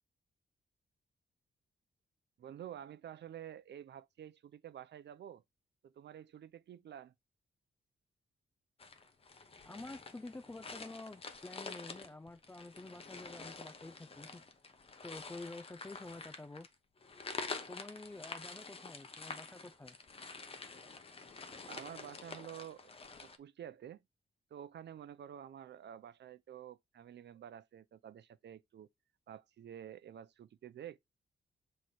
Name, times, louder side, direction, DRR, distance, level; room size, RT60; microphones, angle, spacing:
voice 1, 2.4-5.4 5.8-7.1 18.3-18.5 21.7-22.9 23.2-24.0 24.5-28.9 29.3-31.0, right 10 dB, 70° right, 0.6 m, -50 dB
sound 1, 8.8-23.4, left 4 dB, 30° left, 1.0 m, -48 dB
voice 2, 9.6-14.4 15.0-16.7 17.7-20.0, left 2 dB, 10° left, 0.3 m, -49 dB
7.7 x 3.2 x 4.2 m
wide cardioid pair, 135°, 19 cm